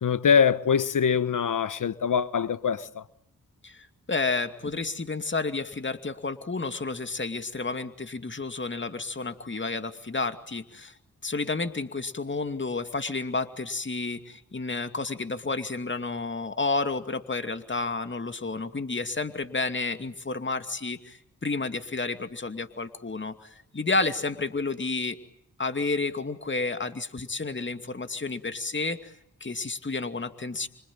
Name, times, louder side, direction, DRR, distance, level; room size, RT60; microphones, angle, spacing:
voice 1, 0.0-3.0, left 7 dB, 60° left, 1.3 m, -23 dB
voice 2, 3.6-10.9 11.2-25.2 25.6-29.1 29.4-30.7, left 3 dB, 35° left, 2.6 m, -31 dB
26.0 x 26.0 x 8.9 m
supercardioid pair, 45°, 35 cm